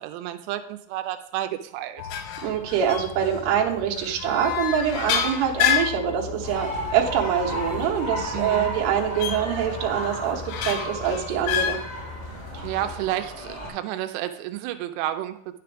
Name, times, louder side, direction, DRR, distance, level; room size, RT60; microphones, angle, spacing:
voice 1, 0.0-2.0 8.3-8.7 12.6-15.4, right 12 dB, 90° right, 8 dB, 2.4 m, -31 dB
sound 1, 2.0-13.0, left 8 dB, 85° left, 3.2 m, -30 dB
voice 2, 2.4-11.8 12.5-12.6, right 8 dB, 70° right, -1 dB, 2.9 m, -25 dB
sound 2, 6.4-13.7, equal, 10° left, 2.0 m, -34 dB
10.0 x 6.9 x 3.4 m, 0.68 s
omnidirectional pair, 5.4 m